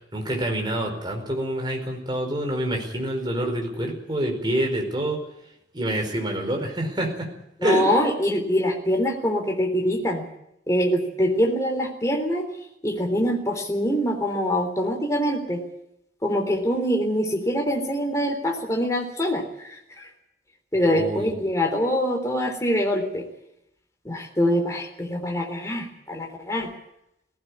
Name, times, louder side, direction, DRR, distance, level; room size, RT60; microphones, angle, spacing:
voice 1, 0.1-5.2 5.7-7.3 7.6-7.9 20.7-21.3, right 1 dB, 25° right, 3 dB, 4.7 m, -27 dB
voice 2, 7.6-10.3 10.7-12.5 12.8-15.6 16.2-19.4 20.0-20.1 20.7-23.2 24.1-26.7, equal, 20° left, 2 dB, 3.6 m, -24 dB
18.0 x 16.0 x 9.9 m, 0.81 s
head